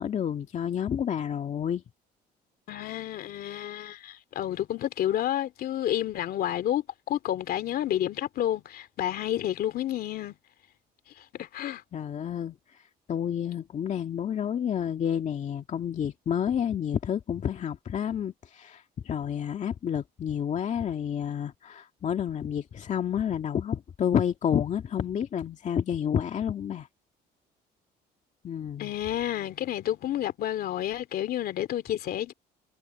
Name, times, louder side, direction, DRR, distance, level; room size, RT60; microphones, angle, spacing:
voice 1, 0.0-1.8 11.9-12.6 13.1-26.9 28.4-28.9, left 8 dB, 45° left, 2.1 m, -29 dB
voice 2, 2.7-10.3 11.3-11.8 28.8-32.3, left 12 dB, 65° left, 2.7 m, -30 dB
cardioid pair, 110°, 17 cm